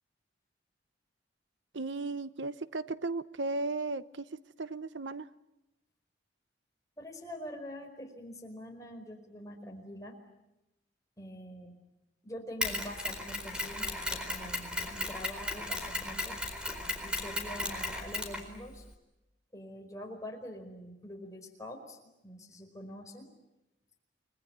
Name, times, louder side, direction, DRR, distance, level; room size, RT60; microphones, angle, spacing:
voice 1, 1.7-5.3, right 3 dB, 85° right, 14 dB, 0.9 m, -36 dB
voice 2, 7.0-10.2 11.2-11.8 12.2-16.4 17.0-18.8 19.5-22.0 22.2-23.3, left 1 dB, 20° left, 2 dB, 4.8 m, -45 dB
Mechanisms, 12.6-18.9, left 1 dB, 5° right, 4.3 m, -36 dB
29.5 x 21.0 x 8.9 m, 0.93 s
head